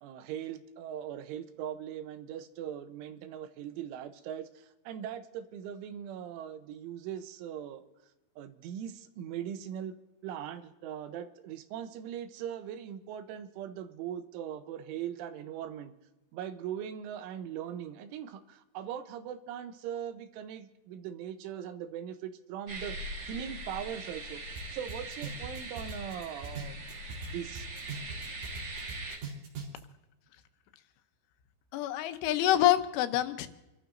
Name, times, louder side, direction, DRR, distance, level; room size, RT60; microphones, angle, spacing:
voice 1, 0.0-7.8 8.4-9.9 10.2-15.9 16.3-23.0 23.2-26.9 27.3-27.7, right 9 dB, 80° right, 10 dB, 3.3 m, -40 dB
sound 1, 22.7-29.2, right 2 dB, 30° right, 3.5 m, -41 dB
sound 2, 24.6-24.7 24.9-27.3 27.6-29.8, right 5 dB, 55° right, 4.6 m, -40 dB
voice 2, 31.7-33.5, left 13 dB, 85° left, 9 dB, 3.3 m, -26 dB
28.5 x 13.0 x 2.6 m, 1.0 s
omnidirectional pair, 5.6 m